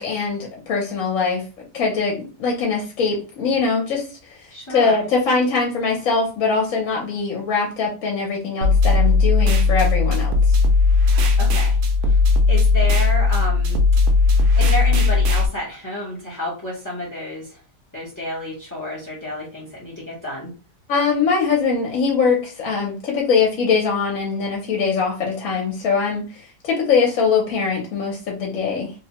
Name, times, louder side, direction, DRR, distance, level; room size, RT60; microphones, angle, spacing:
voice 1, 0.0-10.6 20.9-28.9, left 5 dB, 60° left, -2 dB, 1.0 m, -22 dB
voice 2, 4.5-5.0 11.3-12.2 12.5-13.8 14.6-17.6 17.9-20.5, left 1 dB, 25° left, -5 dB, 0.4 m, -30 dB
sound 1, 8.6-15.5, left 4 dB, 75° right, 1.0 m, -17 dB
2.9 x 2.1 x 2.8 m, 0.35 s
omnidirectional pair, 1.7 m